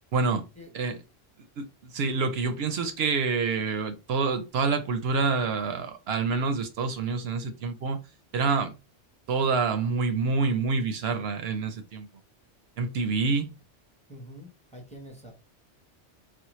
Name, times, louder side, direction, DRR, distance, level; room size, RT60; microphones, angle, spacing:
voice 1, 0.1-0.5 0.7-1.0 1.6-8.0 8.3-8.7 9.3-12.1 12.8-13.5, right 4 dB, 65° right, 0.7 m, -27 dB
voice 2, 14.1-15.3, equal, 5° left, 0.8 m, -46 dB
4.2 x 2.0 x 3.0 m
omnidirectional pair, 1.2 m